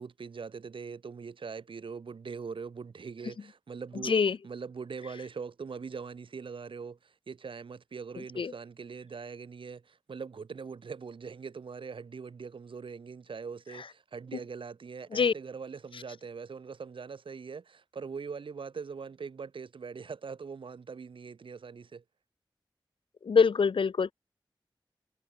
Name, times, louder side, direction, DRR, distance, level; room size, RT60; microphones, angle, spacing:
voice 1, 0.0-22.0, right 5 dB, 85° right, 2.7 m, -42 dB
voice 2, 4.0-4.4 8.4-8.5 15.1-15.3 23.2-24.1, left 5 dB, 80° left, 1.2 m, -24 dB
wide cardioid pair, 60°, 9 cm